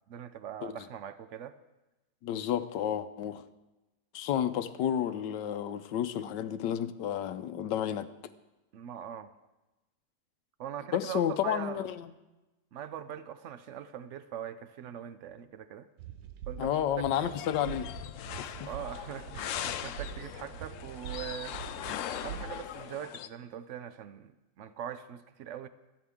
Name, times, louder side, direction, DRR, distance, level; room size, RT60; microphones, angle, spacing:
voice 1, 0.1-1.6 8.7-9.3 10.6-11.8 12.7-15.9 16.5-17.3 18.6-21.6 22.2-25.7, right 9 dB, 70° right, 12 dB, 0.7 m, -42 dB
voice 2, 2.2-3.4 4.1-8.1 10.9-12.1 16.6-17.9 18.4-18.7, left 10 dB, 90° left, 12 dB, 1.3 m, -31 dB
sound 1, 16.0-22.7, right 8 dB, 85° right, 1.4 m, -44 dB
sound 2, 17.1-23.3, left 10 dB, 70° left, 0.7 m, -40 dB
25.5 x 8.6 x 3.6 m, 1.1 s
omnidirectional pair, 1.8 m